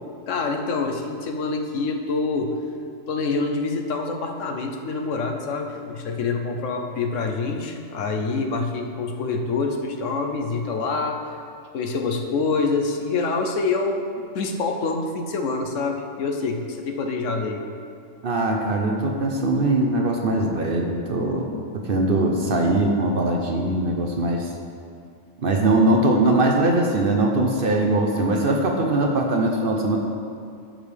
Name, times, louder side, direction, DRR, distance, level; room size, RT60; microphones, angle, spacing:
voice 1, 0.3-2.6 3.1-11.2 11.7-17.7, left 3 dB, 70° left, 3 dB, 1.0 m, -26 dB
voice 2, 18.2-21.5 21.7-24.5 25.4-30.0, right 2 dB, 50° right, 1 dB, 0.8 m, -21 dB
12.5 x 5.3 x 3.4 m, 2.4 s
omnidirectional pair, 1.4 m